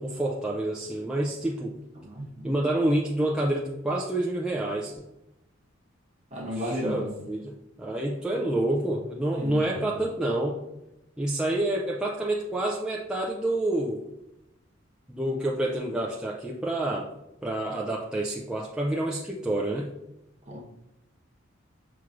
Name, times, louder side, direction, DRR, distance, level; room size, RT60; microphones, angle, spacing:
voice 1, 0.0-1.7 2.4-5.1 6.5-10.6 11.2-14.0 15.1-17.1 17.4-19.9, right 1 dB, 5° right, -4 dB, 0.3 m, -28 dB
voice 2, 2.0-2.5 6.3-7.1 9.3-10.0 20.5-20.6, equal, 35° right, -1 dB, 0.9 m, -34 dB
5.8 x 3.1 x 2.4 m, 0.89 s
head